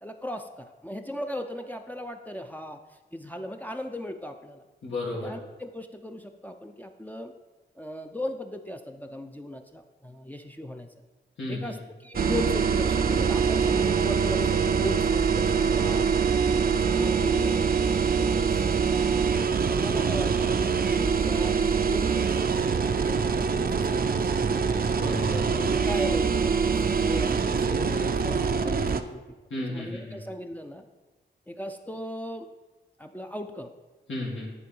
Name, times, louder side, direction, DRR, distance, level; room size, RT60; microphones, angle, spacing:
voice 1, 0.0-2.8 3.1-4.6 5.1-7.3 7.8-10.9 11.5-16.1 16.5-19.3 19.7-20.6 20.9-24.8 25.5-29.2 29.7-30.8 31.5-32.5 33.0-33.7, left 1 dB, 10° left, 4 dB, 0.5 m, -37 dB
voice 2, 4.8-5.3 11.4-11.8 24.9-25.4 29.5-30.2 34.1-34.5, left 2 dB, 80° left, -4 dB, 2.1 m, -33 dB
sound 1, 12.1-29.0, right 6 dB, 50° right, 0.5 m, -24 dB
9.6 x 3.7 x 5.4 m, 1.2 s
cardioid pair, 75°, 20 cm